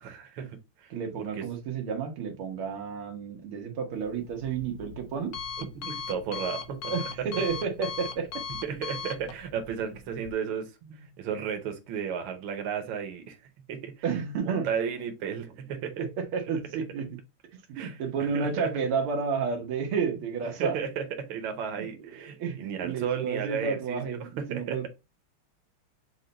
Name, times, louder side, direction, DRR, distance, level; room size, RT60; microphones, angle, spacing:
voice 1, 0.0-0.9 1.4-1.5 5.6-6.8 8.6-13.4 13.7-13.9 14.5-16.0 17.7-18.7 20.6-24.9, right 7 dB, 70° right, 6 dB, 1.6 m, -34 dB
voice 2, 0.9-5.3 6.7-8.3 14.0-14.7 16.0-17.2 17.5-20.8 21.8-24.9, right 5 dB, 90° right, 4 dB, 1.9 m, -31 dB
Alarm, 3.9-10.3, left 6 dB, 70° left, 0.9 m, -39 dB
6.3 x 2.2 x 3.8 m, 0.26 s
omnidirectional pair, 2.3 m